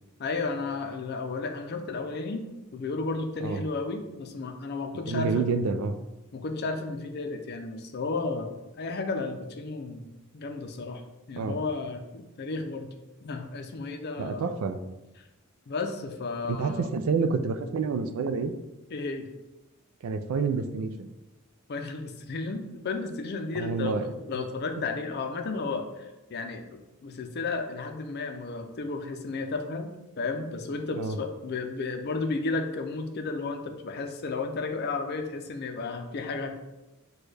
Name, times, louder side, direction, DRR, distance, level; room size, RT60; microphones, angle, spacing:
voice 1, 0.2-2.4 2.7-5.5 6.3-11.0 11.3-12.9 13.2-14.5 15.7-16.9 18.9-19.3 21.7-29.9 30.2-36.5, left 3 dB, 50° left, 5 dB, 0.5 m, -33 dB
voice 2, 5.1-5.9 11.4-11.6 14.2-14.8 16.5-18.5 20.0-21.1 23.5-24.1 31.0-31.2, right 4 dB, 80° right, 9 dB, 0.3 m, -28 dB
6.1 x 2.3 x 3.3 m, 0.99 s
head